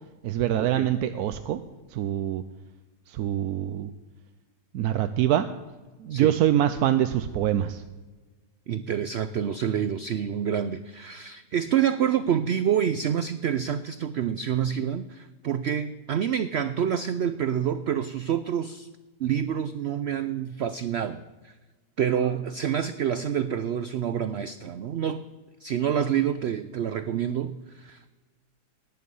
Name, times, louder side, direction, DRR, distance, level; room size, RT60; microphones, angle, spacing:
voice 1, 0.2-1.6 1.9-2.4 3.1-3.9 4.7-5.5 6.0-7.8, right 11 dB, 75° right, 10 dB, 1.1 m, -24 dB
voice 2, 8.7-18.9 19.2-21.5 22.0-25.2 25.6-28.1, right 9 dB, 90° right, 13 dB, 0.5 m, -27 dB
17.5 x 10.5 x 5.5 m, 1.3 s
omnidirectional pair, 1.7 m